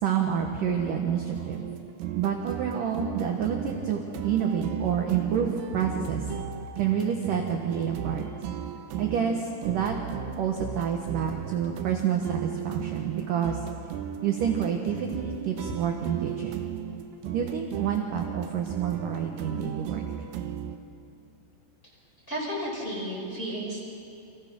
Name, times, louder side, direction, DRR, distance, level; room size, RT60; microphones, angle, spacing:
voice 1, 0.0-1.6 2.1-6.2 6.8-8.3 9.0-10.0 10.4-13.6 14.2-16.6 17.3-20.0, right 8 dB, 65° right, 2 dB, 2.3 m, -28 dB
sound 1, 1.3-20.8, right 9 dB, 85° right, 2.0 m, -36 dB
voice 2, 22.3-23.8, equal, 10° left, -4 dB, 6.1 m, -32 dB
29.5 x 25.0 x 6.3 m, 2.7 s
omnidirectional pair, 5.5 m